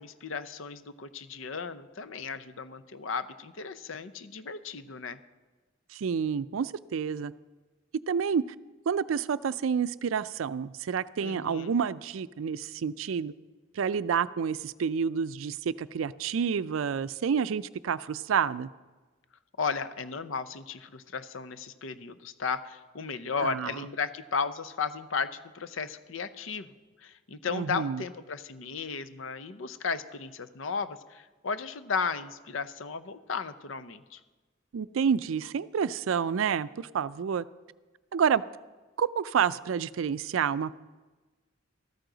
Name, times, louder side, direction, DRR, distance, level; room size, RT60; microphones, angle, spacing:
voice 1, 0.0-5.2 11.2-11.8 19.6-26.7 27.0-34.2, left 5 dB, 75° left, 0.7 m, -35 dB
voice 2, 5.9-7.3 8.1-8.4 8.9-13.3 13.7-18.7 23.4-23.8 27.5-28.0 34.7-37.5 38.1-38.4 39.0-40.8, right 7 dB, 80° right, 0.4 m, -29 dB
14.0 x 13.5 x 3.9 m
head